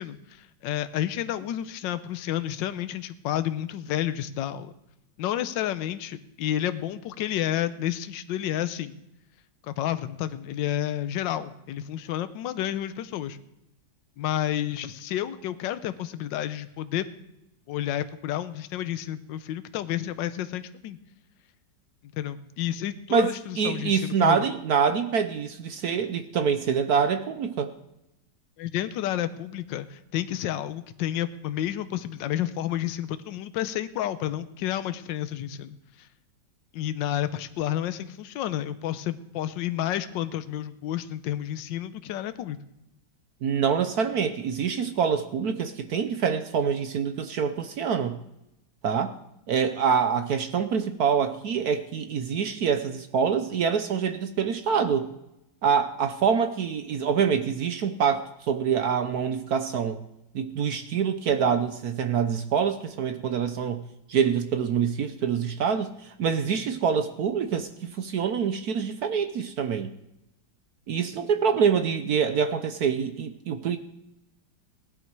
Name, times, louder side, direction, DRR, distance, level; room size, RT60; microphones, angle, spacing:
voice 1, 0.0-4.7 5.2-9.0 9.6-13.4 14.2-17.1 17.7-21.0 22.1-24.5 28.6-36.1 36.7-42.6, left 12 dB, 75° left, 12 dB, 1.4 m, -30 dB
voice 2, 23.1-27.7 43.4-48.2 48.8-49.1 49.5-55.1 55.6-60.0 60.3-63.8 64.1-69.9 70.9-73.8, right 7 dB, 60° right, 9 dB, 1.1 m, -25 dB
17.0 x 11.0 x 4.7 m, 0.87 s
omnidirectional pair, 2.1 m